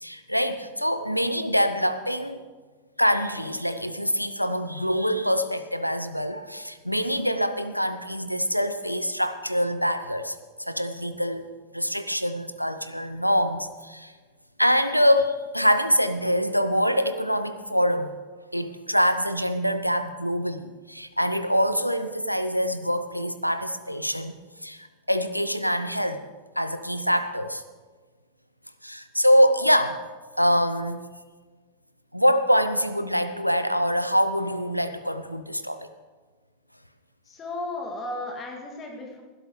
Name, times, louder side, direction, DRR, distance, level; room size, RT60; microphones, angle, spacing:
voice 1, 0.0-2.4 3.0-14.1 14.6-18.1 18.5-26.2 26.6-27.6 28.8-30.0 30.4-31.0 32.1-35.9, equal, 90° left, 11 dB, 0.7 m, -24 dB
voice 2, 37.3-39.2, left 2 dB, 25° left, 1 dB, 2.4 m, -34 dB
19.5 x 12.5 x 3.3 m, 1.4 s
figure-of-eight pair, 90°, 0 cm